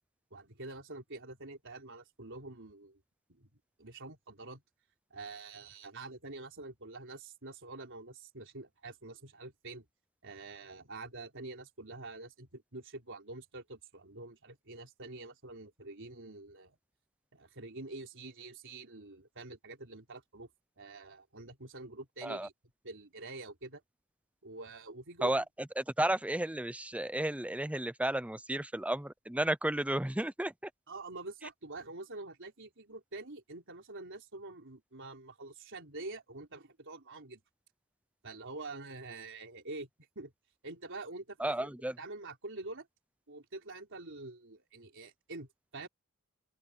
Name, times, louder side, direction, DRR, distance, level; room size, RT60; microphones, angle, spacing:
voice 1, 0.3-3.0 3.3-3.5 3.8-4.6 5.1-9.9 10.2-16.8 17.3-20.5 20.8-22.5 22.8-23.8 24.4-25.5 30.9-37.4 38.2-39.9 40.2-40.3 40.6-42.9 43.3-45.9, right 2 dB, 60° right, 4.2 m, -46 dB
voice 2, 25.2-30.7 41.4-42.0, right 1 dB, 5° right, 0.6 m, -33 dB
open air
head